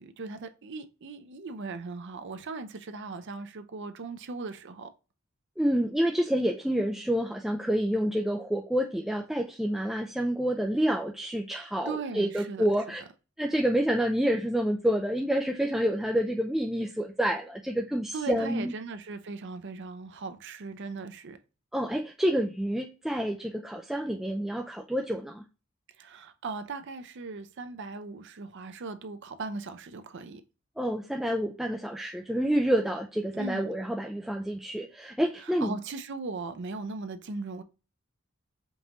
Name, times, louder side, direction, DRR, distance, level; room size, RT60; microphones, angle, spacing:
voice 1, 0.0-4.9 11.8-12.7 18.1-21.4 26.0-30.4 33.3-33.7 35.4-37.6, right 3 dB, 60° right, 0.5 m, -38 dB
voice 2, 5.6-13.0 13.4-18.7 21.7-25.4 30.8-35.7, equal, ahead, 0.3 m, -28 dB
5.3 x 2.5 x 2.9 m
head